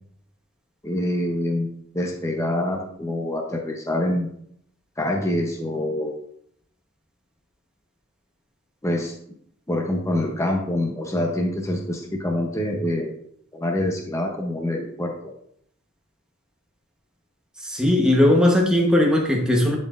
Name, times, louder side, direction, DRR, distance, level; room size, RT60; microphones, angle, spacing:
voice 1, 0.8-4.3 5.0-6.1 8.8-9.1 9.7-13.1 13.5-15.3, left 1 dB, 15° left, 1 dB, 0.7 m, -26 dB
voice 2, 17.6-19.8, left 1 dB, 5° right, 0 dB, 1.1 m, -18 dB
10.5 x 4.4 x 2.5 m, 0.69 s
head